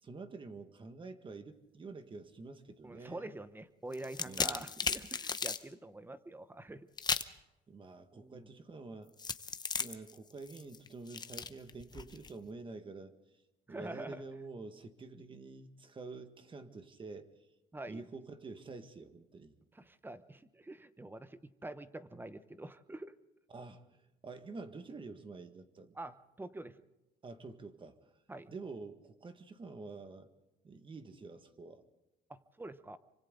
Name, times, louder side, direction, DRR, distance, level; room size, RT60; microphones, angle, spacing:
voice 1, 0.0-3.3 4.3-4.7 7.7-9.1 9.8-13.1 13.7-17.3 17.9-19.5 23.5-25.9 27.2-28.0 28.5-30.3 30.6-31.8, right 3 dB, 30° right, 8 dB, 1.8 m, -48 dB
voice 2, 2.8-6.9 8.1-8.5 13.7-14.2 17.7-18.0 19.7-23.1 25.9-26.8 28.3-28.5 32.3-33.0, right 2 dB, 10° right, 13 dB, 1.0 m, -46 dB
sound 1, 3.9-5.6 7.0-7.4 9.2-12.3, left 5 dB, 25° left, 0.9 m, -36 dB
27.5 x 25.0 x 3.9 m, 1.0 s
cardioid pair, 110°, 17 cm